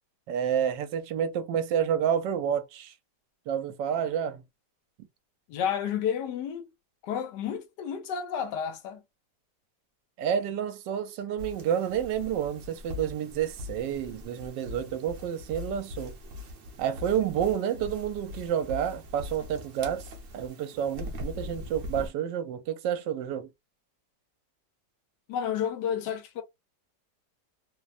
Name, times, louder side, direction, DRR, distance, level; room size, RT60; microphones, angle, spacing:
voice 1, 0.3-2.9 3.5-4.4 10.2-16.1 16.8-20.0 20.3-23.5, right 9 dB, 80° right, 1.2 m, -29 dB
voice 2, 5.5-6.7 7.0-9.0 25.3-26.4, left 8 dB, 75° left, 1.2 m, -31 dB
sound 1, 11.4-22.1, left 2 dB, 60° right, 0.9 m, -41 dB
3.1 x 2.1 x 2.4 m
omnidirectional pair, 1.9 m